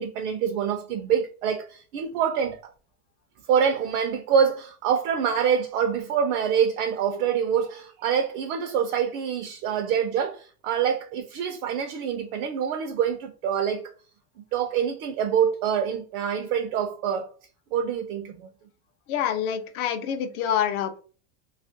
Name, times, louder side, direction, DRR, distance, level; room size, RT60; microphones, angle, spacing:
voice 1, 0.0-2.7 3.5-13.9 14.5-17.3 17.7-18.5, right 7 dB, 65° right, 0.5 m, -25 dB
voice 2, 19.1-21.0, left 9 dB, 65° left, 0.6 m, -26 dB
2.8 x 2.4 x 2.6 m
supercardioid pair, 170°, 46 cm